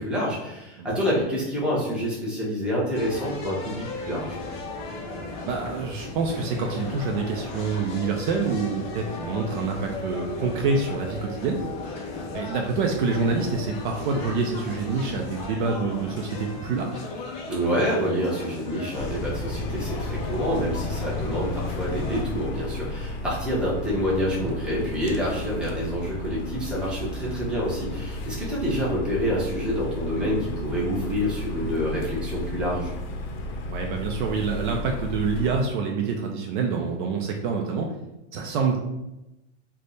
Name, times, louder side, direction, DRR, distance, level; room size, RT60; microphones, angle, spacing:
voice 1, 0.0-4.4 17.5-32.9, equal, 5° right, -6 dB, 0.8 m, -27 dB
sound 1, 2.9-22.2, left 3 dB, 20° left, 0.3 m, -36 dB
voice 2, 5.5-11.6 12.3-17.0 24.3-24.5 31.6-31.7 33.7-37.9 38.3-38.8, right 4 dB, 50° right, 1 dB, 0.5 m, -27 dB
sound 2, 18.9-35.6, left 2 dB, 60° left, 0.7 m, -33 dB
3.4 x 2.2 x 3.9 m, 0.94 s
supercardioid pair, 150°, 33 cm